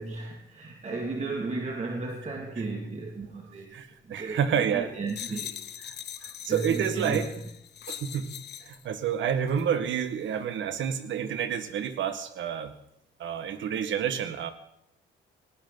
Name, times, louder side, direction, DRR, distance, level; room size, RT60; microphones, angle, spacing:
voice 1, 0.0-3.8 4.0-5.6 6.5-7.2, right 3 dB, 35° right, 1 dB, 2.5 m, -34 dB
voice 2, 3.7-4.9 6.2-7.3 7.9-8.4 8.6-12.7 13.2-14.5, right 8 dB, 75° right, 9 dB, 1.8 m, -29 dB
sound 1, 5.1-8.8 9.5-9.7, left 10 dB, 60° left, 0.9 m, -41 dB
18.5 x 18.0 x 4.1 m, 0.80 s
cardioid pair, 90°, 20 cm